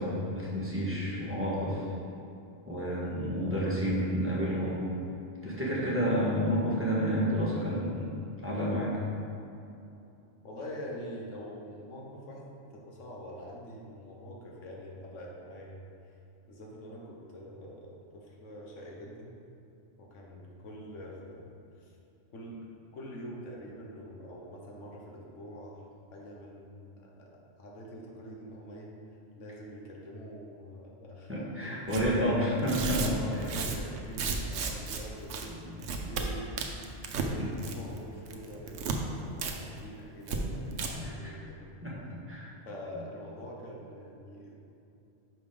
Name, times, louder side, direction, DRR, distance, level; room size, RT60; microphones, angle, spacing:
voice 1, 0.0-1.8 2.7-4.8 5.4-8.1 8.4-9.0 31.3-33.1 35.7-35.8 37.3-37.5 40.4-40.7 40.9-41.3 41.8-41.9 42.3-42.5, equal, 10° right, -8 dB, 1.4 m, -30 dB
voice 2, 10.4-16.2 16.5-19.4 20.0-22.0 22.3-22.6 22.9-25.8 26.1-28.9 29.3-32.2 32.9-36.5 37.1-41.7 42.6-44.5, equal, 85° left, -2 dB, 1.4 m, -45 dB
Tearing, 31.9-32.1 32.6-35.0 35.3-35.5 35.8-36.2 36.6-37.3 37.6-38.0 38.3-39.0 39.4-39.5 39.8-39.9 40.3-40.4 40.7-40.9, right 5 dB, 90° right, 1.1 m, -33 dB
5.9 x 5.3 x 5.0 m, 2.7 s
omnidirectional pair, 1.2 m